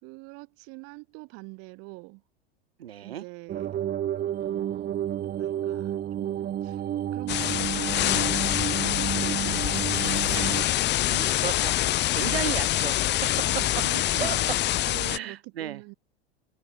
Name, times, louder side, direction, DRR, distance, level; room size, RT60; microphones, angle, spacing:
voice 1, 0.0-2.2 3.0-3.8 4.4-6.8 7.1-8.6 8.9-11.4 13.5-14.5 14.9-15.9, right 29 dB, 45° right, 5.7 m, -44 dB
voice 2, 2.8-3.2 10.3-10.7 11.4-11.7 12.1-13.6 14.1-14.4 15.1-15.8, right 10 dB, 70° right, 2.2 m, -34 dB
sound 1, 3.5-10.6, right 11 dB, 30° right, 3.7 m, -31 dB
sound 2, 7.3-15.2, left 15 dB, 35° left, 1.9 m, -25 dB
figure-of-eight pair, 90°, 32 cm